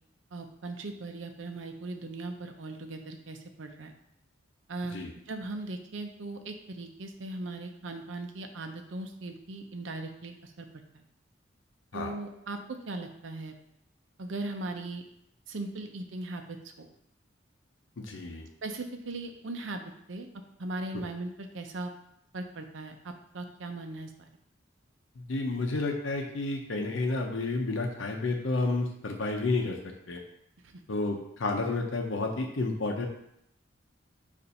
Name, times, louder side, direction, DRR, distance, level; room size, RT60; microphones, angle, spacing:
voice 1, 0.3-3.9 4.7-5.0 5.3-10.7 10.9-11.0 11.9-13.6 14.2-15.0 15.5-16.9 18.6-19.8 20.1-20.3 20.6-21.9 22.3-24.3 30.6-30.8, right 2 dB, 85° right, 5 dB, 0.6 m, -38 dB
voice 2, 18.0-18.5 20.9-21.0 25.2-29.8 30.1-30.2 30.9-33.1, left 3 dB, 90° left, 2 dB, 0.7 m, -31 dB
6.8 x 2.6 x 5.2 m, 0.77 s
head